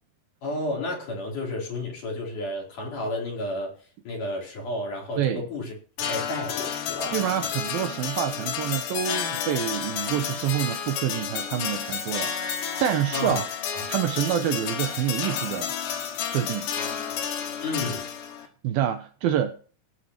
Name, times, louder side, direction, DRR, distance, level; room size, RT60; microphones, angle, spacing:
voice 1, 0.4-3.7 4.0-7.2 13.1-13.4 13.7-13.8 17.6-18.1, left 1 dB, 50° left, 5.0 m, -32 dB
sound 1, 6.0-18.5, left 8 dB, 85° left, 3.9 m, -31 dB
voice 2, 7.1-13.5 13.9-15.7 16.2-16.7 18.6-19.5, right 10 dB, 75° right, 2.4 m, -27 dB
18.0 x 8.5 x 3.0 m
omnidirectional pair, 4.7 m